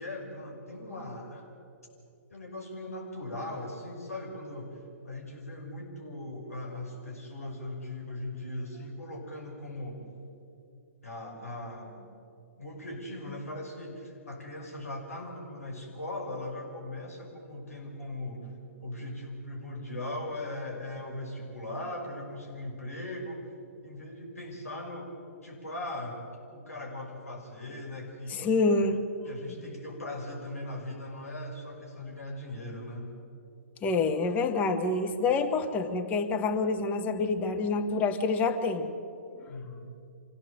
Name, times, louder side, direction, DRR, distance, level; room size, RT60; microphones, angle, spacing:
voice 1, 0.0-1.5 2.3-10.0 11.0-11.9 12.6-18.5 18.8-23.5 23.8-25.1 25.4-26.2 26.5-28.5 29.2-33.1 39.5-39.9, left 1 dB, 75° left, 1 dB, 5.8 m, -39 dB
voice 2, 28.3-29.0 29.6-29.7 33.8-38.9, left 3 dB, 20° left, 5 dB, 1.4 m, -27 dB
26.0 x 16.5 x 7.7 m, 2.7 s
figure-of-eight pair, 125°, 8 cm